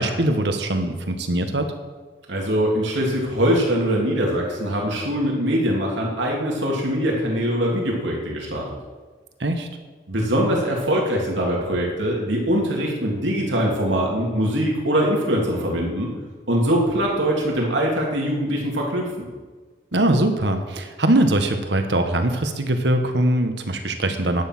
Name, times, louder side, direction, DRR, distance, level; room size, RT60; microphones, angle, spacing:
voice 1, 0.0-1.7 9.4-9.7 19.9-24.4, right 1 dB, 70° right, 6 dB, 1.3 m, -21 dB
voice 2, 2.3-8.7 10.1-16.1 16.5-19.3, equal, 85° right, -2 dB, 2.9 m, -22 dB
11.0 x 9.6 x 6.1 m, 1.4 s
head